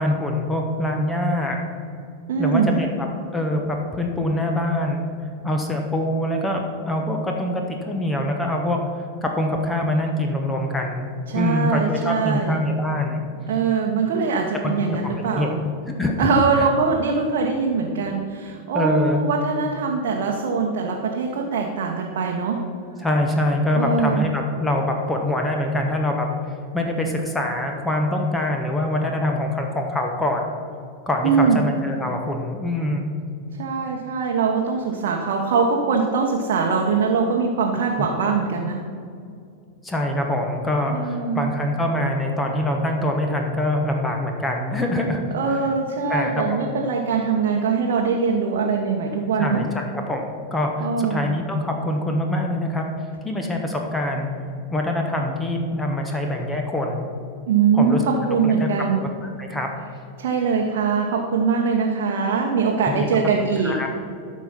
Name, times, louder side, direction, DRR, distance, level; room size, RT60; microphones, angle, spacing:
voice 1, 0.0-1.6 2.4-2.9 3.3-5.1 5.4-8.8 9.2-11.1 11.3-13.2 14.6-15.5 15.9-16.3 16.6-16.7 18.7-19.2 23.0-26.3 26.7-30.4 31.1-33.1 38.0-38.1 39.8-45.2 45.5-45.6 46.1-46.3 49.4-50.2 50.5-52.8 53.2-54.3 54.7-57.0 57.7-58.0 58.4-58.7 58.9-59.7 62.9-63.1 63.6-63.9, left 1 dB, 10° left, 2 dB, 1.1 m, -24 dB
voice 2, 2.3-2.8 11.3-12.6 13.5-15.6 16.2-22.6 23.8-24.3 31.2-31.7 33.6-38.8 40.9-41.5 45.3-49.7 50.8-51.3 57.5-59.0 60.2-63.7, right 5 dB, 55° right, 0 dB, 1.0 m, -22 dB
12.5 x 5.2 x 5.8 m, 2.4 s
figure-of-eight pair, 90°, 0 cm